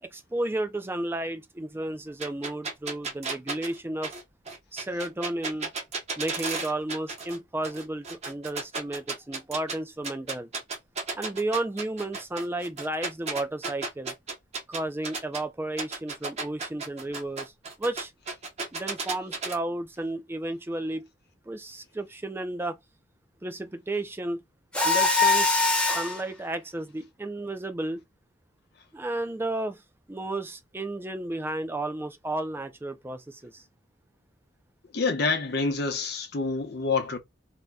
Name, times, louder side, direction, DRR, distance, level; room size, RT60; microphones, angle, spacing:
voice 1, 0.0-4.1 4.7-5.7 6.2-10.5 11.2-14.1 14.7-17.5 17.8-18.1 18.7-21.1 21.5-22.8 23.4-24.4 24.8-28.0 28.9-29.8 30.1-33.6, right 2 dB, 10° right, 0.4 m, -33 dB
sound 1, 2.2-7.4 7.6-9.8 10.0-15.4 15.8-19.6, right 3 dB, 35° right, 0.8 m, -34 dB
Mechanisms, 24.7-26.2, left 3 dB, 5° left, 0.7 m, -22 dB
voice 2, 34.9-37.2, left 4 dB, 60° left, 0.7 m, -27 dB
2.7 x 2.1 x 3.4 m
head